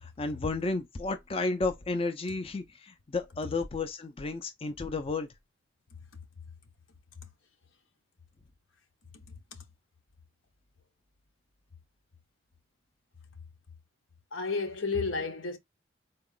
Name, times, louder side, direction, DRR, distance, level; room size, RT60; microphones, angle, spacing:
voice 1, 0.0-5.3, left 3 dB, 30° left, 0.4 m, -32 dB
voice 2, 14.3-15.6, left 4 dB, 80° left, 0.9 m, -32 dB
3.9 x 2.3 x 3.6 m
head